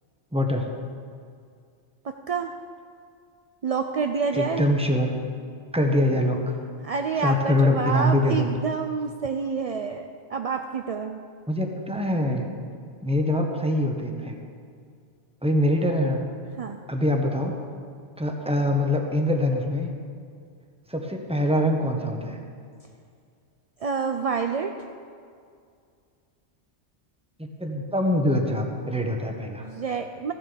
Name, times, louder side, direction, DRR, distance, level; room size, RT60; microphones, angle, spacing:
voice 1, 0.3-0.7 4.3-5.1 5.7-6.5 7.2-8.5 11.5-12.5 13.0-14.3 15.4-16.2 16.9-17.6 18.2-19.9 20.9-22.4 27.4-29.7, left 1 dB, 5° right, 2 dB, 1.1 m, -24 dB
voice 2, 2.0-2.5 3.6-4.7 6.8-11.2 16.6-16.8 23.8-24.7 29.6-30.3, right 5 dB, 55° right, 5 dB, 0.4 m, -28 dB
14.5 x 7.6 x 6.9 m, 2.2 s
omnidirectional pair, 1.2 m